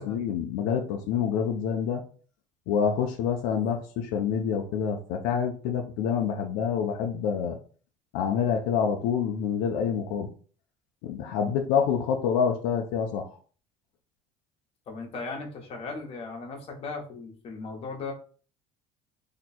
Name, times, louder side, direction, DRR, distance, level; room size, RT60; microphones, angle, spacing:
voice 1, 0.0-2.0 2.7-7.6 8.1-10.3 11.0-13.3, left 7 dB, 85° left, 3 dB, 0.5 m, -27 dB
voice 2, 14.9-18.1, left 3 dB, 40° left, 1 dB, 1.0 m, -37 dB
2.9 x 2.2 x 4.2 m, 0.41 s
cardioid pair, 130°, 15 cm